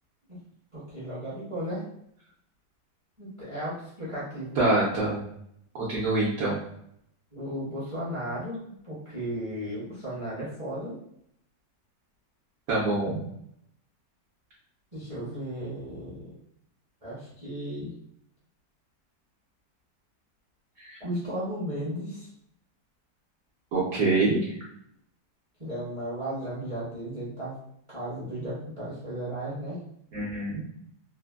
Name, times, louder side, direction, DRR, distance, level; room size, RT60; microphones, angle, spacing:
voice 1, 0.7-1.9 3.2-4.6 7.3-11.0 14.9-16.3 17.0-17.9 21.0-22.3 25.6-27.5 27.9-29.8, right 1 dB, 35° right, -8 dB, 0.5 m, -35 dB
voice 2, 4.6-5.3 5.7-6.6 12.7-13.2 20.8-21.0 23.7-24.5 30.1-30.6, right 2 dB, 65° right, -7 dB, 1.1 m, -25 dB
3.3 x 2.1 x 2.2 m, 0.71 s
omnidirectional pair, 1.8 m